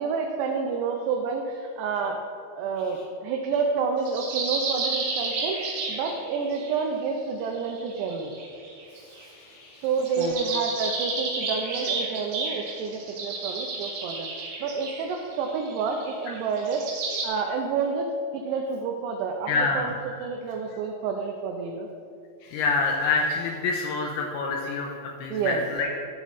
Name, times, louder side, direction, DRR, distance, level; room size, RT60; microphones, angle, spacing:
voice 1, 0.0-2.2 2.6-8.4 9.8-14.3 14.6-16.8 17.2-18.1 18.3-21.9 25.3-25.6, right 5 dB, 80° right, 2 dB, 2.5 m, -29 dB
sound 1, 4.1-6.8 7.5-9.2 10.0-17.3, right 3 dB, 60° right, 2.9 m, -32 dB
voice 2, 9.3-9.8 10.2-10.3 19.5-19.9 22.4-24.9 25.2-25.9, left 4 dB, 85° left, 1 dB, 2.2 m, -27 dB
14.0 x 7.3 x 3.1 m, 2.4 s
omnidirectional pair, 5.4 m